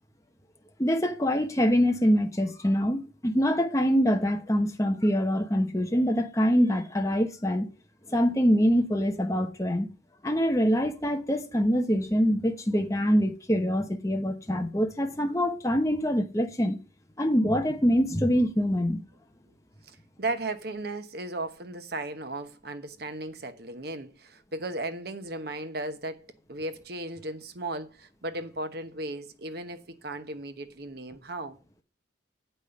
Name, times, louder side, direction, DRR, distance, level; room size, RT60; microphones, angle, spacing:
voice 1, 0.8-7.7 8.1-9.9 10.2-16.8 17.2-19.0, equal, 15° left, 1.0 m, -24 dB
voice 2, 20.2-31.6, right 2 dB, 55° right, 1.1 m, -36 dB
8.2 x 5.6 x 6.8 m
head